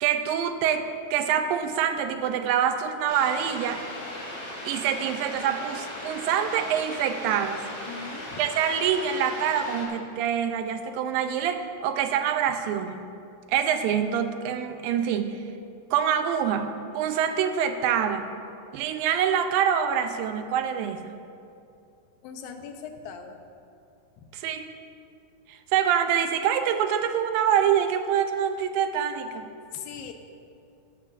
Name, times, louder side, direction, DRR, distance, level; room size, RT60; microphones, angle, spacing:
voice 1, 0.0-3.8 4.6-7.7 8.4-13.0 13.5-15.4 15.9-18.2 18.7-21.1 24.3-24.7 25.5-29.5, right 8 dB, 85° right, 7 dB, 2.4 m, -25 dB
sound 1, 3.1-9.8, left 1 dB, 30° left, 2.4 m, -38 dB
voice 2, 7.9-8.5 22.2-23.4 24.2-24.3 29.7-30.1, left 6 dB, 85° left, 6 dB, 2.6 m, -40 dB
16.5 x 11.5 x 2.6 m, 2.5 s
omnidirectional pair, 4.0 m